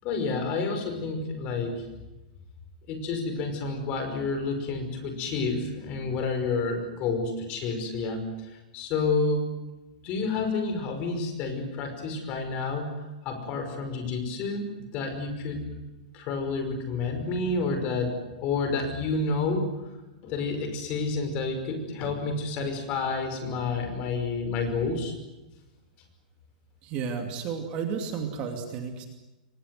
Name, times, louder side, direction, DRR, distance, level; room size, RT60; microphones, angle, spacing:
voice 1, 0.0-1.8 2.9-9.4 10.0-15.6 16.1-19.7 20.2-25.1, left 3 dB, 25° left, 6 dB, 5.5 m, -29 dB
voice 2, 26.8-29.1, right 6 dB, 25° right, 4 dB, 2.7 m, -32 dB
29.0 x 24.0 x 7.9 m, 1.0 s
supercardioid pair, 175°, 5 cm